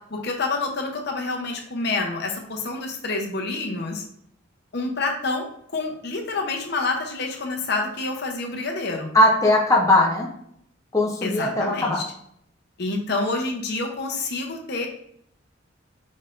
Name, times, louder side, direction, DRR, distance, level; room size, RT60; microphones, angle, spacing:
voice 1, 0.1-4.0 4.7-5.5 5.7-9.1 11.2-12.0 12.8-14.9, left 3 dB, 55° left, 3 dB, 0.8 m, -28 dB
voice 2, 9.1-10.3 10.9-12.0, left 1 dB, 15° left, -1 dB, 0.7 m, -19 dB
5.2 x 3.9 x 2.6 m, 0.69 s
head